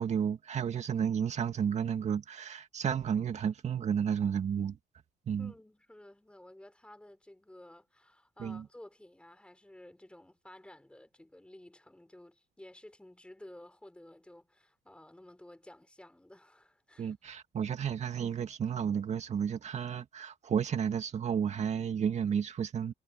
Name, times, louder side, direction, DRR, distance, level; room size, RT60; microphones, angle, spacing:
voice 1, 0.0-4.8 5.3-5.5 8.4-8.7 17.0-22.9, right 7 dB, 40° right, 2.2 m, -32 dB
voice 2, 5.4-17.1, left 1 dB, 5° left, 5.1 m, -54 dB
cardioid pair, 110°, 17 cm